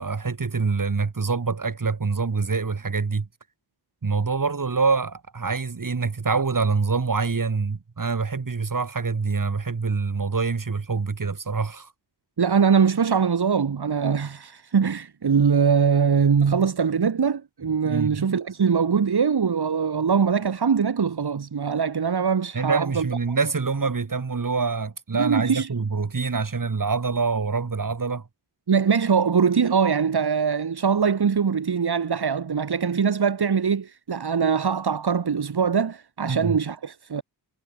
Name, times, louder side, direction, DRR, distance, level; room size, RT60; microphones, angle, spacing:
voice 1, 0.0-3.3 4.0-11.9 17.8-18.2 22.5-28.3 36.2-36.6, right 4 dB, 50° right, 7.0 m, -25 dB
voice 2, 12.4-23.1 25.1-25.7 28.7-37.2, right 6 dB, 65° right, 3.5 m, -22 dB
wide cardioid pair, 80°, 42 cm